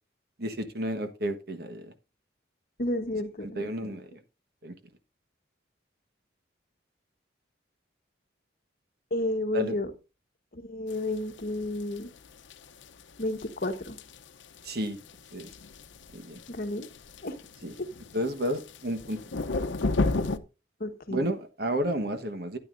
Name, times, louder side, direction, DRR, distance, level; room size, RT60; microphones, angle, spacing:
voice 1, 0.4-1.9 3.6-4.1 4.6-4.7 9.5-9.8 14.6-15.0 15.3-15.5 16.1-16.4 17.6-17.7 18.1-19.2 21.1-22.6, right 1 dB, 55° right, 1.3 m, -31 dB
voice 2, 2.8-4.0 9.1-9.9 10.5-12.1 13.2-14.0 16.5-16.9 17.2-17.4 17.8-17.9 20.8-21.3, left 1 dB, 50° left, 1.2 m, -32 dB
sound 1, 10.9-20.4, left 2 dB, 80° left, 0.7 m, -34 dB
12.5 x 9.4 x 2.6 m
head